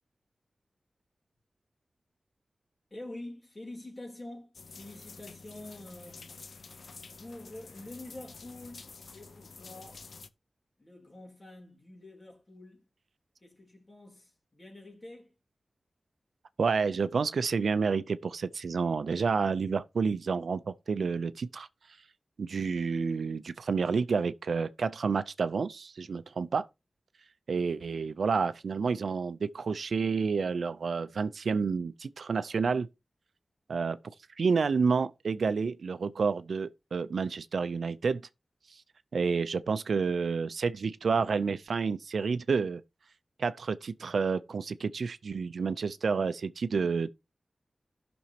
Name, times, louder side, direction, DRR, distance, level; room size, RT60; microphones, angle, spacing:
voice 1, 2.9-6.3 7.2-10.0 10.8-12.9 13.4-15.3, left 1 dB, 35° left, 3.2 m, -47 dB
sound 1, 4.5-10.3, left 4 dB, 75° left, 0.6 m, -49 dB
voice 2, 16.6-21.7 22.4-26.7 27.5-32.9 33.7-34.0 34.4-38.2 39.1-42.8 43.4-47.1, right 5 dB, 85° right, 0.5 m, -29 dB
15.5 x 6.1 x 2.8 m
wide cardioid pair, 65°, 0 cm